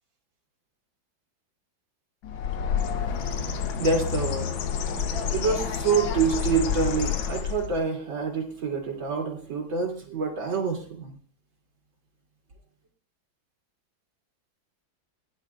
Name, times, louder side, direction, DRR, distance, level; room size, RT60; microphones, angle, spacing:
Bird, 2.2-7.8, left 7 dB, 80° left, 1.7 m, -29 dB
voice 1, 3.2-4.6 4.9-11.2, right 5 dB, 75° right, 1 dB, 3.5 m, -27 dB
21.0 x 11.0 x 2.4 m, 0.40 s
omnidirectional pair, 2.1 m